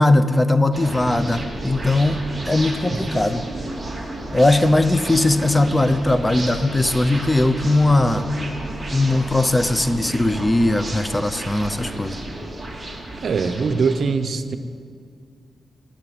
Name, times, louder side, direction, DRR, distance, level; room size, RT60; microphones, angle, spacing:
voice 1, 0.0-2.2 2.5-3.4 4.3-8.2 8.9-12.2, left 2 dB, 15° left, 11 dB, 0.6 m, -19 dB
sound 1, 0.7-14.0, right 1 dB, 15° right, 2.9 m, -32 dB
voice 2, 2.9-3.2 13.2-14.6, right 4 dB, 60° right, 9 dB, 0.8 m, -23 dB
16.0 x 8.4 x 9.3 m, 2.2 s
wide cardioid pair, 120°, 0 cm